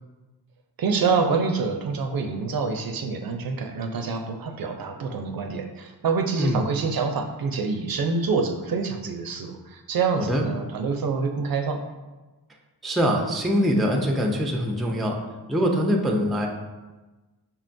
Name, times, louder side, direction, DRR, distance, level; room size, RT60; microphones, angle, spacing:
voice 1, 0.8-11.8, right 4 dB, 60° right, 5 dB, 0.5 m, -26 dB
voice 2, 12.8-15.2 15.5-16.5, equal, ahead, 1 dB, 0.4 m, -23 dB
5.5 x 2.2 x 2.5 m, 1.2 s
cardioid pair, 65°, 42 cm